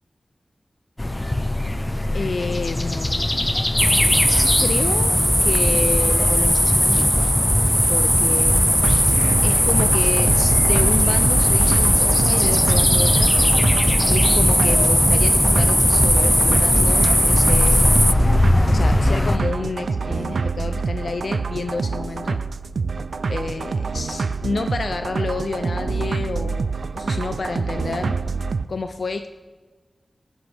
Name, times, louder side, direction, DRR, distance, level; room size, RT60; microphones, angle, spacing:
sound 1, 1.0-19.4, left 1 dB, 20° left, 0.8 m, -23 dB
voice 1, 2.1-3.4 4.3-5.1 5.4-7.1 7.9-13.3 14.1-17.9 18.7-22.4 23.3-28.2 28.7-29.3, left 4 dB, 70° left, 8 dB, 0.5 m, -29 dB
sound 2, 3.8-18.1, equal, 5° left, 0.3 m, -18 dB
sound 3, 8.8-28.7, right 4 dB, 85° right, 0.4 m, -26 dB
19.0 x 11.5 x 3.5 m, 1.4 s
wide cardioid pair, 95°, 0 cm